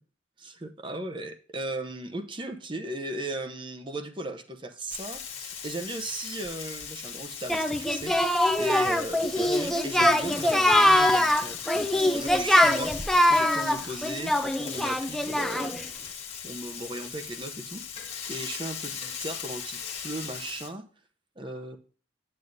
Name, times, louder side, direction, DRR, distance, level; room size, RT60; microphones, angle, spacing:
voice 1, 0.4-8.1 8.6-15.8 16.4-17.8 18.3-20.9 21.4-21.8, right 1 dB, 25° right, 8 dB, 0.8 m, -37 dB
Frying (food), 4.9-20.7, left 7 dB, 35° left, 1.3 m, -38 dB
Singing, 7.5-15.8, left 1 dB, ahead, 0.5 m, -23 dB
9.1 x 7.7 x 2.6 m, 0.41 s
head